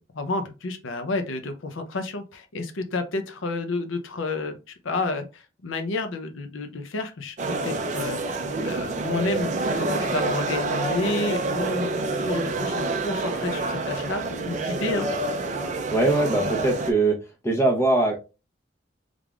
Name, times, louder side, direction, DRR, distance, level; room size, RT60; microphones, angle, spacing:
voice 1, 0.0-11.9 12.2-15.1, left 3 dB, 80° left, 0.6 m, -30 dB
sound 1, 7.4-16.9, right 2 dB, 40° right, 0.4 m, -27 dB
voice 2, 15.9-17.2 17.4-18.2, right 2 dB, 15° left, 0.8 m, -21 dB
3.6 x 3.4 x 2.3 m
head